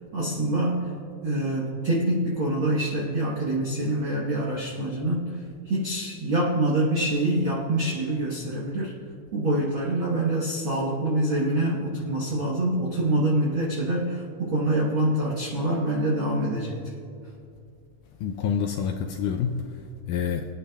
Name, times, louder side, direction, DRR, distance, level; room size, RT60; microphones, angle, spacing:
voice 1, 0.1-0.9 1.2-5.4 5.6-8.9 9.3-16.8, right 1 dB, 75° right, -4 dB, 1.1 m, -25 dB
voice 2, 18.2-20.5, left 7 dB, 80° left, 4 dB, 1.9 m, -28 dB
24.0 x 9.8 x 2.3 m, 2.4 s
omnidirectional pair, 4.1 m